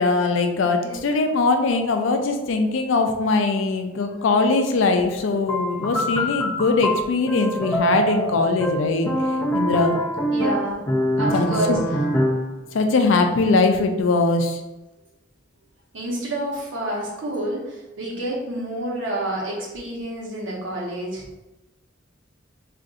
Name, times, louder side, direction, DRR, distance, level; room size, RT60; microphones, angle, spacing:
voice 1, 0.0-9.1 9.5-10.0 11.3-11.8 12.7-14.6, left 3 dB, 80° left, 6 dB, 0.4 m, -21 dB
sound 1, 5.5-12.6, equal, 15° left, 0.4 m, -24 dB
voice 2, 10.3-10.8 11.2-11.8 15.9-21.2, right 1 dB, 85° right, -3 dB, 0.9 m, -28 dB
3.8 x 2.5 x 2.4 m, 1.0 s
head